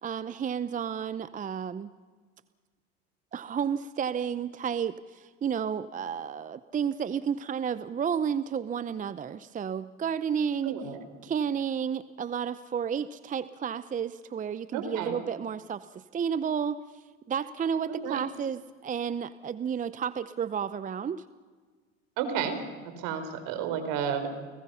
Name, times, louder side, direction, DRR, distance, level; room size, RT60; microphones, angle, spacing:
voice 1, 0.0-1.9 3.3-10.7 11.2-16.8 17.3-21.2, right 7 dB, 20° right, 15 dB, 0.7 m, -31 dB
voice 2, 10.6-11.0 14.7-15.2 17.9-18.2 22.2-22.6 23.0-24.3, right 7 dB, 65° right, 8 dB, 4.6 m, -31 dB
30.0 x 20.0 x 5.7 m, 1.5 s
hypercardioid pair, 95°, 36 cm